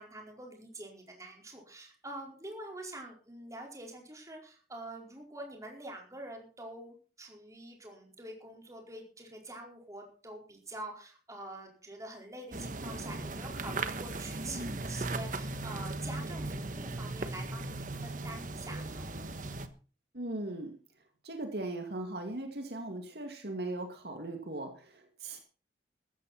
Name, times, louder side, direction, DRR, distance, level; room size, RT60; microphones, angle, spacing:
voice 1, 0.0-19.1, right 1 dB, 20° right, 1 dB, 4.6 m, -46 dB
sound 1, 12.5-19.7, right 2 dB, 45° right, 1.3 m, -37 dB
voice 2, 20.1-20.7 21.2-25.4, right 2 dB, 65° right, 4 dB, 2.4 m, -38 dB
15.0 x 13.5 x 4.3 m, 0.37 s
head